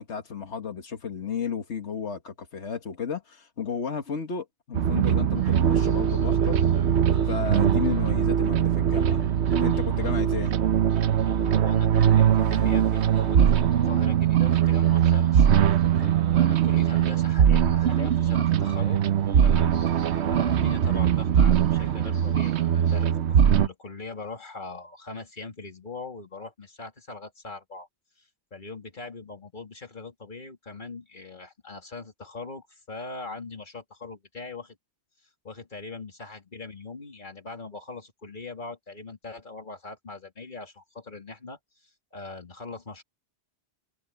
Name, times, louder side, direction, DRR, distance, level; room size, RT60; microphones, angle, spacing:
voice 1, 0.0-6.6 7.2-9.3 9.6-10.6 15.9-16.1, left 6 dB, 90° left, 1.8 m, -33 dB
sound 1, 4.7-23.7, right 9 dB, 85° right, 1.1 m, -21 dB
Train, 5.3-23.1, right 1 dB, 30° right, 6.3 m, -53 dB
voice 2, 11.4-15.5 16.0-19.0 19.4-27.9 28.2-34.8 35.4-41.6 42.1-43.0, left 3 dB, 45° left, 3.0 m, -41 dB
omnidirectional pair, 1.1 m